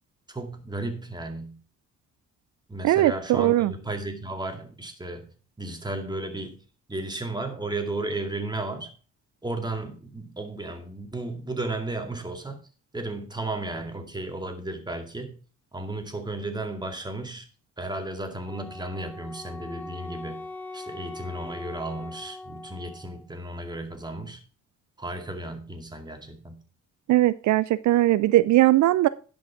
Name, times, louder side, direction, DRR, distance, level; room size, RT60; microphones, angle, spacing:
voice 1, 0.3-1.6 2.7-5.3 5.6-6.6 6.9-8.9 9.4-12.6 12.9-15.3 15.7-17.5 17.8-20.5 20.7-24.4 25.0-26.6, right 2 dB, 15° right, 5 dB, 2.2 m, -34 dB
voice 2, 2.8-3.7 27.1-29.1, right 15 dB, 70° right, 16 dB, 0.5 m, -20 dB
Wind instrument woodwind instrument, 18.4-23.3, left 2 dB, 5° left, 1.1 m, -41 dB
11.0 x 5.4 x 5.7 m, 0.38 s
cardioid pair, 90°, 30 cm